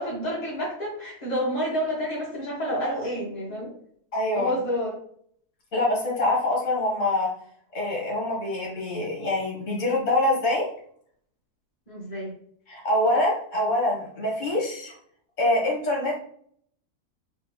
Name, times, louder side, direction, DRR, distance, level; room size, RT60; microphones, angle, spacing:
voice 1, 0.0-3.7 4.3-5.0 11.9-12.3, equal, 25° left, -5 dB, 1.8 m, -29 dB
voice 2, 4.1-4.6 5.7-7.3 7.7-10.6 12.7-14.9 15.4-16.1, left 1 dB, 50° left, -3 dB, 2.0 m, -25 dB
4.1 x 3.5 x 3.4 m, 0.62 s
omnidirectional pair, 1.7 m